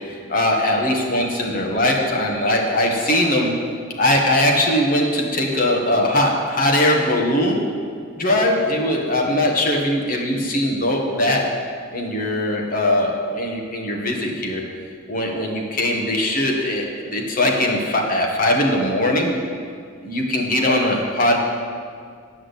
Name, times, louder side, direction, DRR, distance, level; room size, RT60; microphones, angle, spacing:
voice 1, 0.3-3.5 4.0-7.7 8.2-11.4 11.9-14.6 15.1-19.4 20.0-21.4, left 1 dB, 40° left, 0 dB, 1.6 m, -20 dB
10.0 x 6.2 x 8.3 m, 2.1 s
head